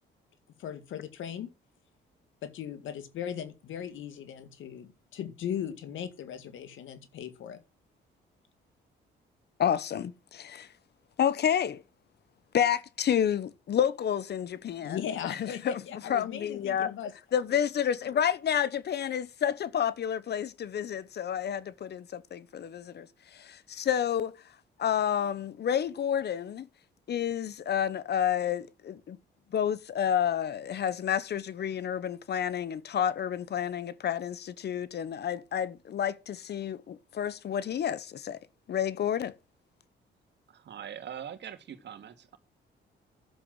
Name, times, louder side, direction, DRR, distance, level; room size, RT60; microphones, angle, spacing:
voice 1, 0.6-1.5 2.4-7.6 14.8-17.1, left 9 dB, 75° left, 2.0 m, -38 dB
voice 2, 9.6-10.7 11.2-11.8 12.5-15.8 16.1-16.9 17.3-23.1 23.3-24.3 24.8-26.7 27.1-29.2 29.5-38.4 38.7-39.3, left 9 dB, 55° left, 1.0 m, -30 dB
voice 3, 40.5-42.4, right 9 dB, 60° right, 2.2 m, -42 dB
11.5 x 7.7 x 7.8 m
cardioid pair, 90°, 20 cm